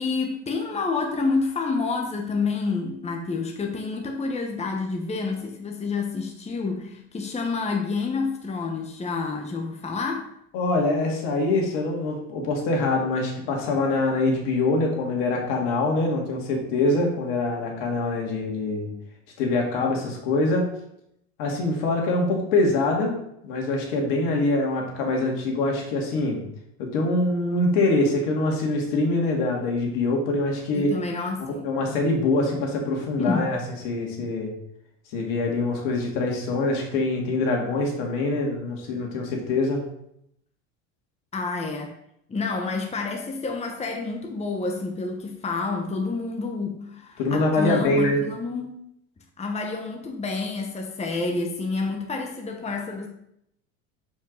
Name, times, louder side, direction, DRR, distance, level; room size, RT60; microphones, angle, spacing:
voice 1, 0.0-10.3 30.7-31.7 33.2-33.5 41.3-41.9 42.3-48.8 49.4-53.1, left 4 dB, 20° left, 2 dB, 1.1 m, -28 dB
voice 2, 10.5-18.9 19.4-20.7 21.4-23.1 23.4-26.4 26.8-30.9 31.5-33.6 33.8-34.5 35.1-39.8 47.2-48.2, left 2 dB, 65° left, 0 dB, 2.2 m, -24 dB
6.7 x 5.2 x 3.9 m, 0.75 s
supercardioid pair, 90°, 36 cm